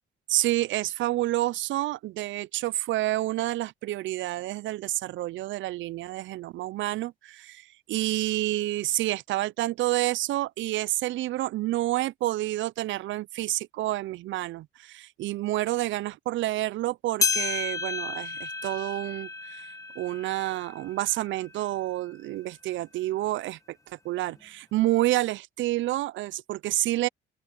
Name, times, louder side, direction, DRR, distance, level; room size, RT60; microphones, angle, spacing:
voice 1, 0.3-7.6 7.9-19.6 20.0-23.6 24.0-27.1, right 16 dB, 75° right, 0.5 m, -29 dB
sound 1, 17.2-21.9 22.4-22.5 23.3-23.4 24.3-24.4, left 4 dB, 15° left, 1.3 m, -32 dB
open air
cardioid pair, 90°, 20 cm